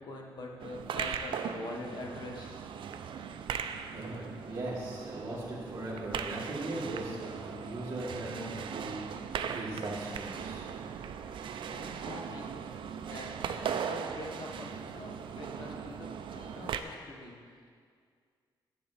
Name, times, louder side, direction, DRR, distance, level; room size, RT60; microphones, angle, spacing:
voice 1, 0.0-2.6 11.7-12.6 12.9-17.7, left 2 dB, 55° left, 0 dB, 1.4 m, -44 dB
sound 1, 0.6-16.8, right 7 dB, 75° right, 0.5 m, -39 dB
voice 2, 3.8-10.7, right 1 dB, 35° right, -9 dB, 1.9 m, -39 dB
10.0 x 7.9 x 4.1 m, 2.1 s
cardioid pair, 120°, 9 cm